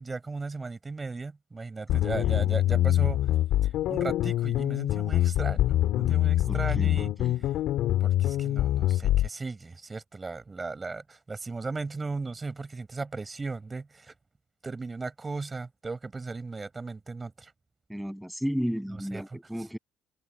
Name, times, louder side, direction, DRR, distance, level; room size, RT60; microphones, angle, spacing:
voice 1, 0.0-3.2 3.6-7.1 7.4-7.5 8.0-14.1 14.6-17.5 19.1-19.2, right 3 dB, 20° right, 5.4 m, -36 dB
sound 1, 1.9-9.3, left 13 dB, 75° left, 4.1 m, -25 dB
voice 2, 1.9-2.5 6.5-7.4 17.9-19.8, equal, ahead, 7.7 m, -34 dB
cardioid pair, 140°, 0 cm